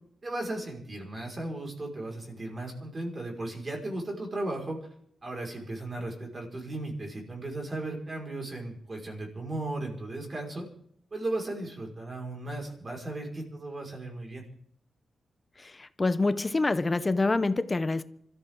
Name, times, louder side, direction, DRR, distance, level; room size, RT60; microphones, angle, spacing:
voice 1, 0.2-4.8 5.2-10.7 11.1-14.4, right 2 dB, 35° right, 0 dB, 5.3 m, -36 dB
voice 2, 15.6-18.0, left 3 dB, 30° left, 14 dB, 0.8 m, -26 dB
26.0 x 14.0 x 3.8 m, 0.66 s
cardioid pair, 85°, 0 cm